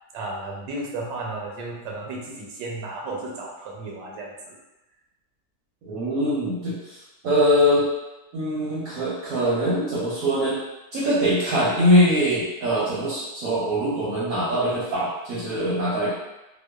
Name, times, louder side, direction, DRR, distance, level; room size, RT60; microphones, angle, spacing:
voice 1, 0.1-4.6, right 2 dB, 80° right, -2 dB, 1.2 m, -34 dB
voice 2, 5.8-7.0 7.2-7.9 8.3-10.6 10.9-16.1, equal, 65° right, -8 dB, 0.9 m, -22 dB
2.9 x 2.1 x 2.2 m, 1.0 s
omnidirectional pair, 1.9 m